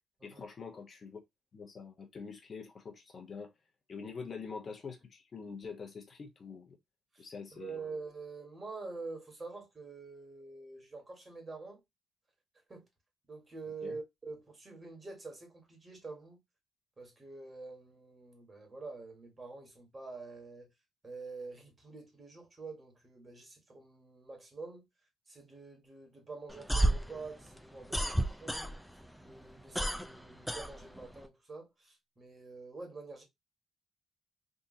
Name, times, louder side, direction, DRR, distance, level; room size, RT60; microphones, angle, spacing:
voice 1, 0.2-1.2 1.5-3.5 3.9-6.8 7.2-7.8 13.8-14.0, left 5 dB, 45° left, 0.9 m, -45 dB
voice 2, 7.5-11.8 12.7-12.9 13.3-16.4 17.0-20.7 21.0-24.8 25.3-28.7 29.2-33.2, right 4 dB, 30° right, 2.0 m, -46 dB
sound 1, 26.5-29.0 29.3-31.3, right 1 dB, ahead, 0.4 m, -31 dB
3.6 x 2.7 x 2.6 m
cardioid pair, 90°, 0 cm